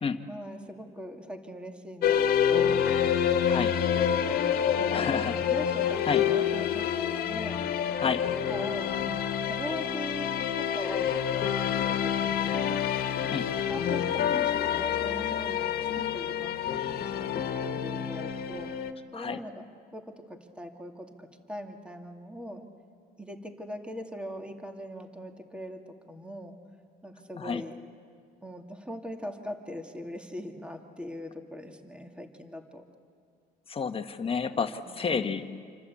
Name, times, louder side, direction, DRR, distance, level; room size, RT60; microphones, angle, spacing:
voice 1, 0.3-2.7 4.7-7.6 8.0-10.3 10.6-12.7 13.2-18.7 19.1-19.7 19.9-22.7 23.2-26.6 27.0-27.8 28.4-32.8 34.8-35.3, equal, 5° right, 4 dB, 2.4 m, -41 dB
sound 1, 2.0-18.9, left 9 dB, 65° left, 1.7 m, -27 dB
voice 2, 4.9-5.4 6.1-6.2 8.0-8.2 13.3-13.5 19.1-19.4 27.4-27.6 33.7-35.5, left 5 dB, 35° left, 6 dB, 1.4 m, -30 dB
27.5 x 25.5 x 8.5 m, 2.3 s
cardioid pair, 110°, 17 cm